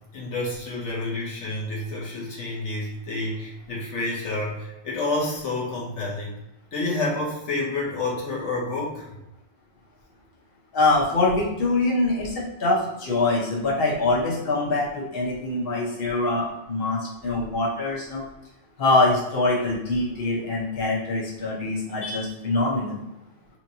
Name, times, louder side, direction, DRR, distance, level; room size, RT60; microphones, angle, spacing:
voice 1, 0.1-6.4 6.7-9.2, left 2 dB, 85° left, -5 dB, 1.2 m, -29 dB
voice 2, 10.7-18.2 18.8-23.0, left 2 dB, 55° left, -5 dB, 1.2 m, -24 dB
4.8 x 3.0 x 2.8 m, 0.91 s
omnidirectional pair, 1.2 m